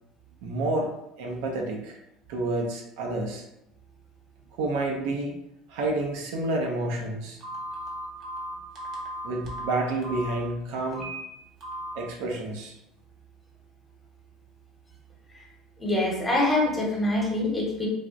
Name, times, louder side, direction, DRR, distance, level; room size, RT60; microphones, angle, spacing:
voice 1, 0.4-0.9 1.2-2.0 2.3-3.5 4.6-5.3 5.7-7.4 9.2-11.1 11.9-12.8, right 2 dB, 80° right, 1 dB, 0.6 m, -29 dB
Telephone, 7.4-10.3 10.9-11.2 11.6-11.9, right 1 dB, 55° right, 0.9 m, -36 dB
voice 2, 15.8-17.9, left 2 dB, 15° left, -2 dB, 0.9 m, -25 dB
3.3 x 2.4 x 2.5 m, 0.83 s
supercardioid pair, 110°, 0 cm